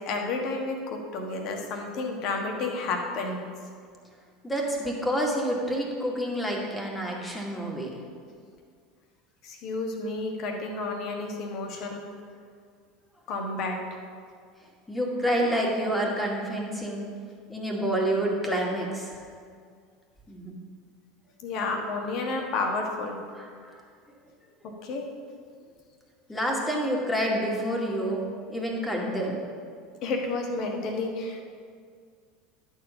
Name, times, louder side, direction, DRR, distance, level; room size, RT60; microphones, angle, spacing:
voice 1, 0.0-3.4 9.4-12.0 13.3-14.0 21.4-23.2 24.6-25.1 30.0-31.4, left 3 dB, 50° left, 2 dB, 1.4 m, -31 dB
voice 2, 4.4-8.0 14.9-17.1 17.5-19.2 20.3-20.5 23.4-23.8 26.3-29.4, equal, 10° left, -1 dB, 2.1 m, -28 dB
11.5 x 4.6 x 6.7 m, 2.1 s
figure-of-eight pair, 70°, 0 cm